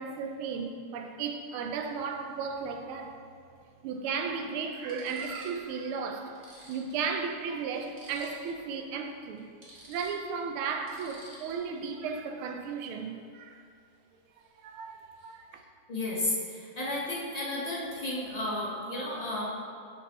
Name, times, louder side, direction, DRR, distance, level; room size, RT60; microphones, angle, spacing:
voice 1, 0.0-3.2 3.8-6.3 6.7-9.5 9.9-13.6 14.6-15.0 15.2-15.6, right 5 dB, 80° right, 4 dB, 1.4 m, -35 dB
sound 1, 2.0-2.1 3.5-3.6 4.3-4.4 4.8-5.7 6.0-6.1 6.3-8.6 8.9-9.1 9.4-11.8 14.4-14.6 14.9-15.4, right 1 dB, 35° right, 1.6 m, -53 dB
voice 2, 15.9-19.5, left 1 dB, 35° left, -5 dB, 0.6 m, -33 dB
8.2 x 5.8 x 3.0 m, 2.2 s
omnidirectional pair, 2.3 m